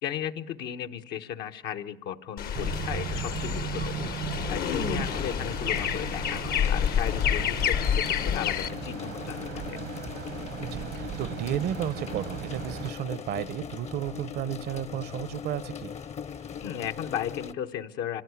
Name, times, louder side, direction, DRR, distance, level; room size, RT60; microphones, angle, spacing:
voice 1, 0.0-4.0 4.5-9.9 16.6-18.2, left 10 dB, 80° left, 7 dB, 1.2 m, -35 dB
sound 1, 2.4-8.7, left 9 dB, 65° left, 0.9 m, -28 dB
sound 2, 2.5-12.9, right 10 dB, 90° right, 1.4 m, -37 dB
sound 3, 5.1-17.5, left 7 dB, 40° left, 0.8 m, -40 dB
voice 2, 10.6-15.9, right 11 dB, 70° right, 19 dB, 0.8 m, -33 dB
25.5 x 16.5 x 9.5 m, 0.92 s
cardioid pair, 110°, 17 cm